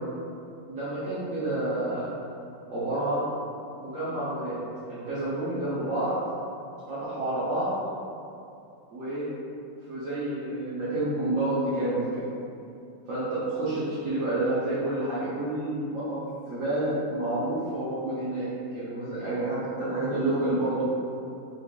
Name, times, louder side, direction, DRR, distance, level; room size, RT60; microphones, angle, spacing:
voice 1, 0.7-2.1 2.7-3.3 3.7-4.6 4.9-6.1 6.9-7.7 8.9-9.3 9.9-12.2 13.1-18.5 18.7-20.9, right 1 dB, 60° right, -11 dB, 0.9 m, -29 dB
3.7 x 3.2 x 2.2 m, 2.7 s
omnidirectional pair, 2.0 m